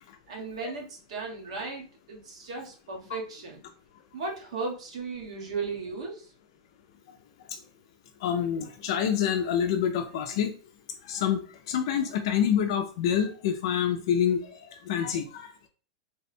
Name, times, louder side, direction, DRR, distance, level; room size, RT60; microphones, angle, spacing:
voice 1, 0.3-3.6 4.1-6.3, right 4 dB, 85° right, -1 dB, 1.3 m, -36 dB
voice 2, 8.2-10.5 11.0-15.7, left 8 dB, 50° left, 5 dB, 0.4 m, -27 dB
3.4 x 2.1 x 4.2 m, 0.41 s
supercardioid pair, 175°, 3 cm